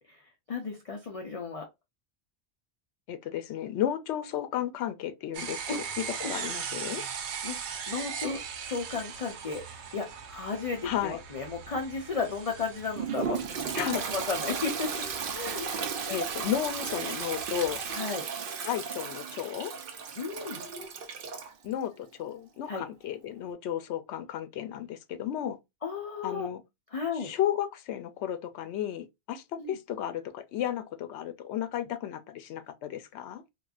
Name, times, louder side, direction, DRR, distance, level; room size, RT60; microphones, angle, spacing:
voice 1, 0.5-1.7 5.7-5.9 6.2-6.3 7.2-13.9 14.1-14.9 15.3-15.7 16.0-16.2 17.9-18.2 20.2-20.6 22.7-22.8 25.8-26.5 26.9-27.3 29.6-29.8, left 4 dB, 45° left, 0.5 m, -34 dB
voice 2, 3.1-7.0 10.8-11.2 13.8-14.0 16.1-17.8 18.6-19.7 21.6-25.6 26.2-26.6 27.2-33.4, left 10 dB, 85° left, 0.9 m, -33 dB
sound 1, 5.3-18.0, right 7 dB, 85° right, 0.9 m, -40 dB
Toilet flush, 13.0-21.5, right 6 dB, 60° right, 0.7 m, -35 dB
3.8 x 2.4 x 2.3 m
omnidirectional pair, 1.1 m